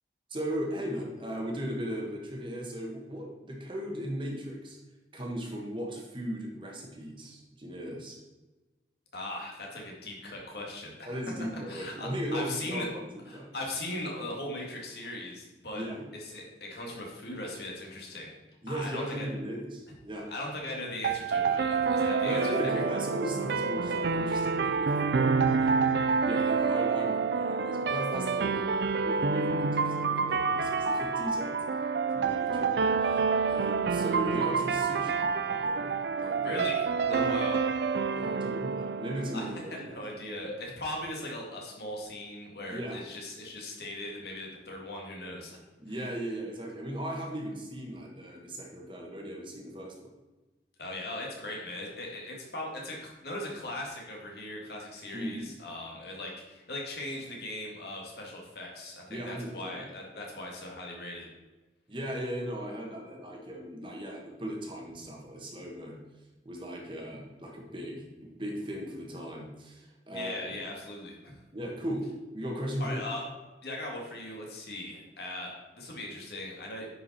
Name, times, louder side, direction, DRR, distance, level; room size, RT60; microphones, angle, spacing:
voice 1, 0.3-4.8 5.1-8.2 11.1-13.0 13.3-13.5 15.7-16.0 18.6-20.3 22.2-25.9 26.2-28.7 29.0-31.6 32.1-33.2 33.5-35.2 35.5-35.9 36.2-36.6 37.1-37.3 38.1-39.9 42.7-43.0 45.8-49.9 55.1-55.4 59.1-59.9 61.9-66.0 66.4-70.5 71.5-72.1 72.3-73.0, equal, 30° right, -1 dB, 1.4 m, -37 dB
voice 2, 9.1-11.1 11.7-12.9 13.3-15.8 16.1-18.4 18.7-19.3 20.3-22.5 36.4-37.6 39.3-39.5 39.7-45.6 50.8-61.3 70.1-71.4 72.8-73.3 73.6-76.9, left 1 dB, 65° left, -1 dB, 2.1 m, -39 dB
sound 1, 21.0-40.0, right 5 dB, 70° right, 0.4 m, -28 dB
9.7 x 5.2 x 4.2 m, 1.2 s
head